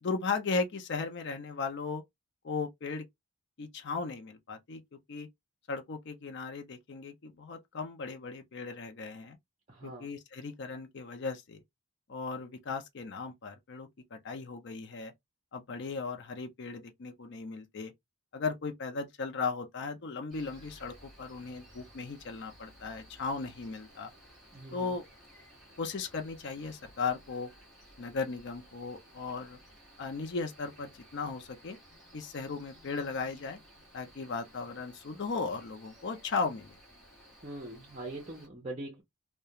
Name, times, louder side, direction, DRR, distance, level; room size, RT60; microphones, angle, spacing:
voice 1, 0.0-2.0 2.4-3.0 3.6-5.3 5.7-9.4 9.8-11.6 12.1-15.1 15.5-17.9 18.3-24.1 24.7-25.0 25.8-27.5 28.0-29.6 30.0-31.8 32.1-33.6 33.9-36.7, left 4 dB, 50° left, 0.4 m, -36 dB
voice 2, 9.7-10.1 24.5-25.0 37.4-39.0, right 1 dB, 30° right, 0.6 m, -42 dB
Cricket, 20.3-38.5, equal, ahead, 1.0 m, -57 dB
2.3 x 2.1 x 2.8 m
head